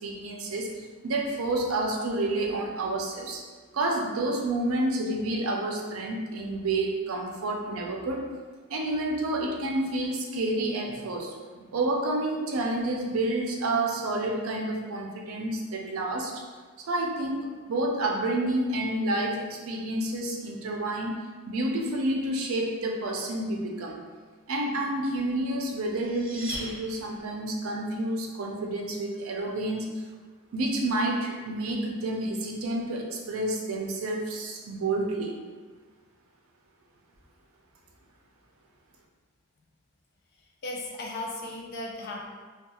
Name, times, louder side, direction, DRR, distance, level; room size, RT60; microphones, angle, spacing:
voice 1, 0.0-3.4 3.7-8.2 8.7-16.4 16.8-21.2 21.5-24.0 24.5-29.9 30.5-35.3, right 2 dB, 85° right, 0 dB, 0.4 m, -29 dB
sound 1, 25.8-27.5, equal, 20° right, 1.0 m, -40 dB
voice 2, 40.6-42.3, left 2 dB, 50° left, 0 dB, 0.4 m, -36 dB
2.3 x 2.3 x 2.9 m, 1.4 s
head